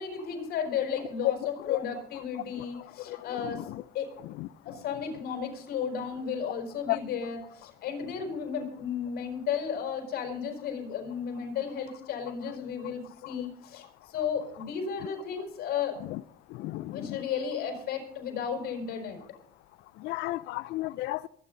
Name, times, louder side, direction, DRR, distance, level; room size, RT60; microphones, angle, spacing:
voice 1, 0.0-3.7 3.9-4.1 4.6-15.9 16.9-19.2, left 7 dB, 70° left, 4.6 m, -34 dB
voice 2, 3.4-3.8 4.4-4.5 6.9-7.0 16.1-16.2 16.6-17.2 20.0-21.3, left 18 dB, 85° left, 0.5 m, -33 dB
22.5 x 9.8 x 3.9 m
cardioid pair, 110°, 17 cm